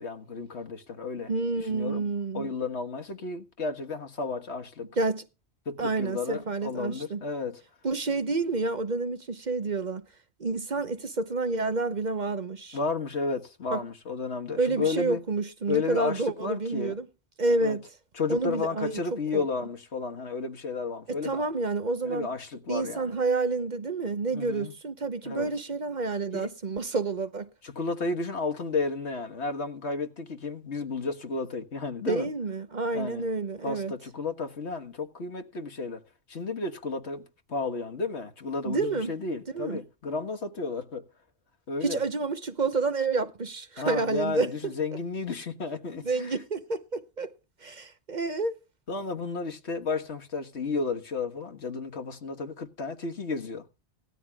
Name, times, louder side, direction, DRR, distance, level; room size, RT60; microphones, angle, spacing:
voice 1, 0.0-1.3 1.6-2.1 2.3-4.9 5.7-7.6 12.7-15.2 15.7-17.0 17.6-17.8 18.1-21.5 22.0-23.2 24.3-24.7 25.2-25.5 26.3-26.5 27.6-32.3 32.9-33.3 33.6-36.0 36.3-41.1 41.7-42.0 43.8-46.4 48.9-53.7, left 4 dB, 75° left, 1.8 m, -32 dB
voice 2, 1.3-2.5 5.0-5.2 5.8-7.2 7.8-10.0 10.4-12.8 13.7-13.8 14.6-17.1 17.4-17.8 18.3-19.0 19.3-19.4 21.1-22.3 22.7-27.5 32.1-33.9 38.6-39.1 39.5-39.8 41.8-44.7 46.0-47.3 47.6-48.5, right 3 dB, 45° right, 1.0 m, -29 dB
18.0 x 13.0 x 2.4 m
omnidirectional pair, 1.1 m